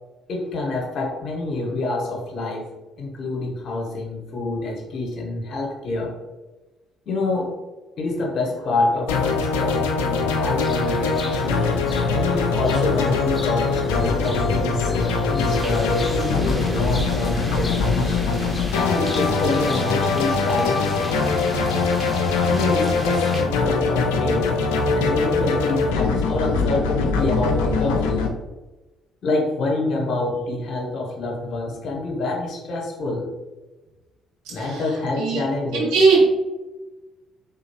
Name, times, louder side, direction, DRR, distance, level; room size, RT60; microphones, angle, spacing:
voice 1, 0.3-2.7 3.0-6.1 7.1-7.5 8.0-11.7 12.1-18.4 18.7-21.1 22.4-24.5 25.0-28.3 29.2-33.3 34.5-35.9, left 2 dB, 55° left, 0 dB, 0.9 m, -26 dB
sound 1, 9.1-28.3, left 4 dB, 75° left, 0.3 m, -22 dB
sound 2, 10.6-20.4, left 2 dB, 30° left, 0.6 m, -40 dB
sound 3, 15.4-23.4, equal, 5° right, 0.9 m, -36 dB
voice 2, 35.7-36.2, right 4 dB, 75° right, -5 dB, 1.1 m, -18 dB
3.5 x 2.8 x 2.8 m, 1.1 s
hypercardioid pair, 50°, 0 cm